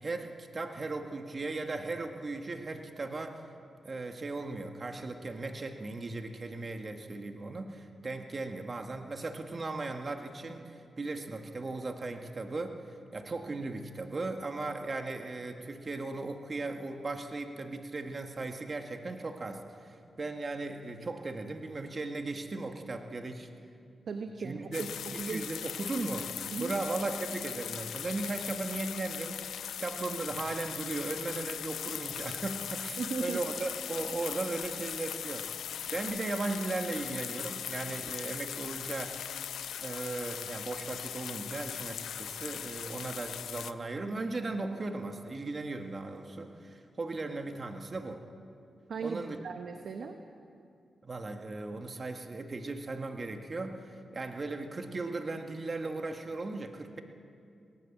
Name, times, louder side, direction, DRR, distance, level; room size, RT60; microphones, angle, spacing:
voice 1, 0.0-3.4 3.8-23.5 24.4-24.9 25.1-26.3 26.6-29.4 29.8-35.5 35.9-39.2 39.8-48.2 49.0-49.4 51.0-57.0, right 3 dB, 45° right, 5 dB, 1.8 m, -37 dB
voice 2, 24.1-24.9 25.2-25.4 26.5-26.8 33.0-33.4 48.9-50.2, right 5 dB, 75° right, 5 dB, 1.2 m, -37 dB
sound 1, 24.7-43.7, left 9 dB, 85° left, 0.5 m, -39 dB
19.0 x 18.5 x 7.4 m, 2.5 s
cardioid pair, 50°, 0 cm